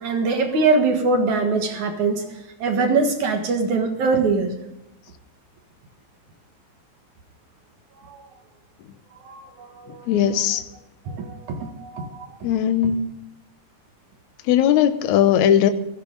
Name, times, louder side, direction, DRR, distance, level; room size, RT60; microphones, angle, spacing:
voice 1, 0.0-2.2 2.6-4.5 8.1-8.2 9.3-9.4 9.8-10.0 11.1-12.3, right 3 dB, 60° right, 4 dB, 2.7 m, -22 dB
voice 2, 10.1-10.6 12.4-13.0 14.5-15.7, left 10 dB, 75° left, 10 dB, 1.8 m, -18 dB
17.0 x 14.5 x 3.9 m, 0.88 s
omnidirectional pair, 4.2 m